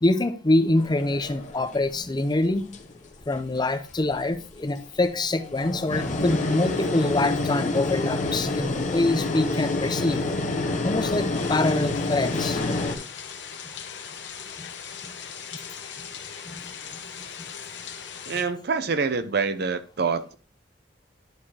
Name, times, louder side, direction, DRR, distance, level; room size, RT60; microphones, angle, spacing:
voice 1, 0.0-2.7 3.3-10.3 10.8-12.6 14.6-14.7 15.0-15.1 16.0-16.1 16.5-16.7 17.4-17.5, left 2 dB, 25° left, 0.5 m, -25 dB
sound 1, 0.8-2.1 2.7-3.2 3.9-4.5 5.1-12.9, left 2 dB, 45° left, 1.0 m, -28 dB
sound 2, 11.3-18.4, left 7 dB, 80° left, 1.0 m, -39 dB
voice 2, 18.3-20.4, right 5 dB, 60° right, 0.6 m, -26 dB
10.5 x 4.8 x 2.8 m
head